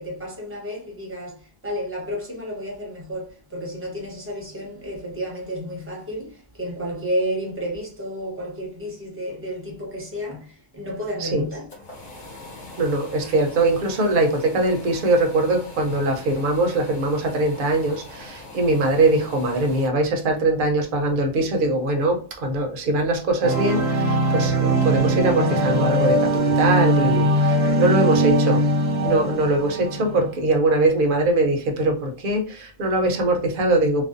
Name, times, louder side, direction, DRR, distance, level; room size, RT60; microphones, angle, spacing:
voice 1, 0.0-11.7 27.6-27.8, equal, 15° right, 0.7 m, -31 dB
sound 1, 11.5-19.9, left 2 dB, 50° left, 0.9 m, -42 dB
voice 2, 12.8-28.6 29.0-34.1, right 2 dB, 55° right, 0.8 m, -22 dB
sound 2, 23.4-30.3, right 1 dB, 85° right, 0.9 m, -21 dB
2.4 x 2.1 x 2.5 m
omnidirectional pair, 1.1 m